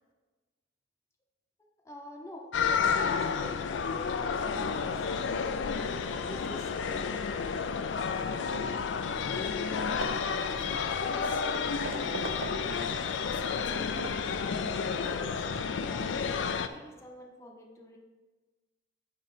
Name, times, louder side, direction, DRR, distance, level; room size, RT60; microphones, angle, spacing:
voice 1, 1.8-2.5 2.7-5.5 6.2-7.2 15.0-18.0, equal, 15° left, 0 dB, 0.7 m, -47 dB
sound 1, 2.5-16.7, left 5 dB, 70° left, 0.4 m, -31 dB
Hammer / Wood, 9.4-9.7 10.0-12.9 13.3-14.4, right 4 dB, 70° right, 0.5 m, -43 dB
voice 2, 10.5-14.1, left 2 dB, 50° left, 4 dB, 0.8 m, -47 dB
9.0 x 3.1 x 5.5 m, 1.3 s
head